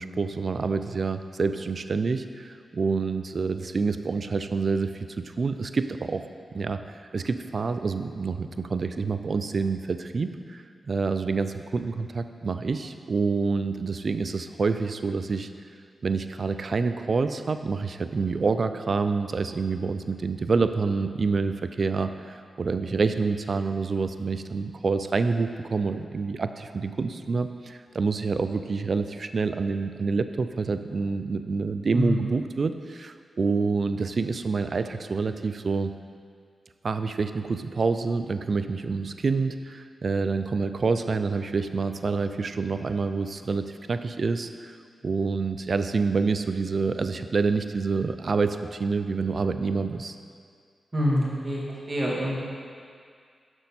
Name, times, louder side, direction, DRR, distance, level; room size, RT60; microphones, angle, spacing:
voice 1, 0.0-5.1 5.4-6.3 6.5-15.5 16.0-35.9 36.8-44.8 45.0-50.2, right 4 dB, 60° right, 10 dB, 0.3 m, -27 dB
voice 2, 50.9-52.4, equal, 30° right, -5 dB, 1.9 m, -26 dB
6.4 x 6.2 x 4.2 m, 2.2 s
cardioid pair, 55°, 0 cm